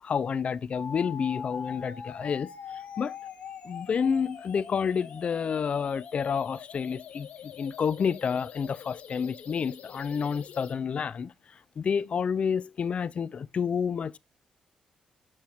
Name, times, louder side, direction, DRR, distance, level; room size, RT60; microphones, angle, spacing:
voice 1, 0.0-2.5 3.0-3.1 3.6-11.3 11.8-14.2, left 6 dB, 50° left, 0.3 m, -29 dB
sound 1, 0.7-10.7, left 7 dB, 75° left, 1.5 m, -43 dB
8.6 x 4.6 x 2.8 m
supercardioid pair, 60°, 3 cm